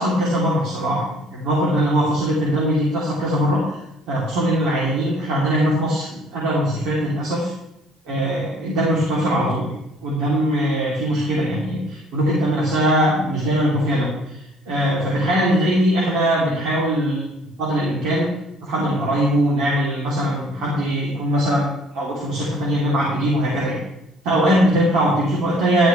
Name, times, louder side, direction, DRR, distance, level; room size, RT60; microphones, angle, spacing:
voice 1, 0.0-3.6 4.1-7.5 8.1-9.7 10.0-14.4 14.7-17.3 17.6-18.3 18.6-21.7 21.9-23.8 24.2-25.9, equal, 70° right, -6 dB, 3.5 m, -21 dB
12.5 x 12.0 x 3.5 m, 0.86 s
cardioid pair, 180°, 0 cm